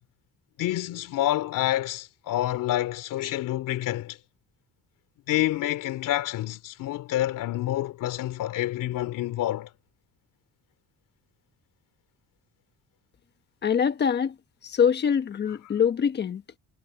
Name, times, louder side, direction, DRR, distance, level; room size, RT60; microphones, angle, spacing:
voice 1, 0.6-4.2 5.3-9.7, left 14 dB, 75° left, 3.0 m, -28 dB
voice 2, 13.6-14.3 14.6-16.4, left 7 dB, 30° left, 1.2 m, -24 dB
cardioid pair, 165°, 32 cm